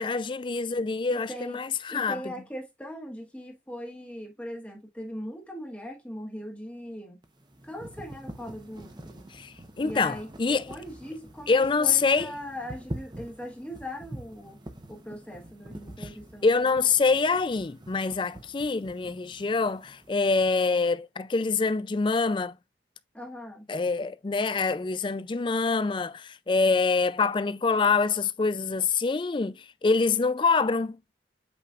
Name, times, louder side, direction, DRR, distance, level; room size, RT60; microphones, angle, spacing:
voice 1, 0.0-2.2 9.3-10.7 11.5-12.3 16.0-16.1 16.4-22.5 23.7-31.0, left 4 dB, 25° left, 0.3 m, -25 dB
voice 2, 1.1-1.6 1.9-7.2 7.6-9.3 9.8-14.6 14.9-16.8 23.1-23.7, equal, 5° left, 1.3 m, -40 dB
sound 1, 7.2-20.5, right 1 dB, 25° right, 0.8 m, -45 dB
8.3 x 5.0 x 2.4 m
head